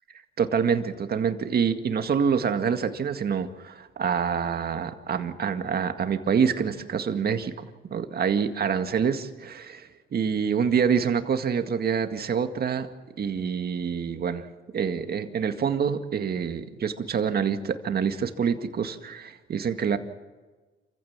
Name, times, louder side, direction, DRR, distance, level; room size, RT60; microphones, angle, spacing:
voice 1, 0.4-7.5 7.9-12.9 13.2-14.5 14.7-20.0, right 7 dB, 50° right, 7 dB, 2.0 m, -26 dB
28.0 x 15.5 x 7.4 m, 1.3 s
cardioid pair, 90°, 20 cm